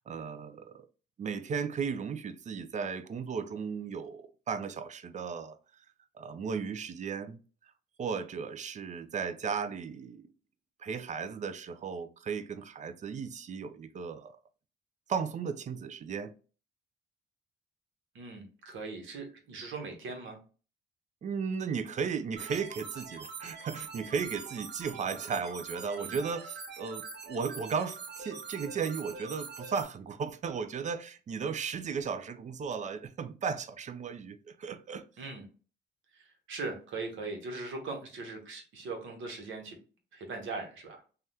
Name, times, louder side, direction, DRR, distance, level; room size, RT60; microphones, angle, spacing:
voice 1, 0.1-0.9 1.2-5.6 6.1-7.4 8.0-10.3 10.8-14.4 15.1-16.3 21.2-35.0, right 6 dB, 40° right, 0.4 m, -35 dB
voice 2, 18.1-20.4 26.0-26.2 35.2-35.4 36.1-39.8 40.1-41.0, right 3 dB, 75° right, 1.0 m, -40 dB
sound 1, 22.4-29.8, right 5 dB, 55° right, 0.9 m, -44 dB
3.3 x 2.3 x 2.7 m
cardioid pair, 90°, 20 cm